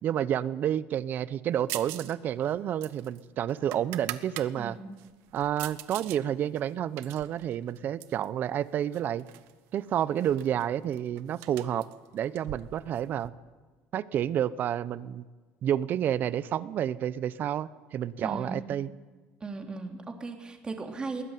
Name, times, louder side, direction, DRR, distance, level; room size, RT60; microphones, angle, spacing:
voice 1, 0.0-4.8 5.3-9.2 9.7-11.9 12.1-13.3 13.9-15.2 15.6-18.9, right 10 dB, 50° right, 18 dB, 0.8 m, -30 dB
sound 1, 1.7-2.2 2.4-4.5 5.0-6.2 6.6-8.3 8.9-9.5 9.8-9.9 10.2-13.3, right 16 dB, 80° right, 1.1 m, -42 dB
voice 2, 18.2-18.7 19.4-21.2, right 3 dB, 20° right, 3 dB, 3.4 m, -37 dB
21.0 x 17.0 x 9.3 m, 1.3 s
cardioid pair, 110°, 4 cm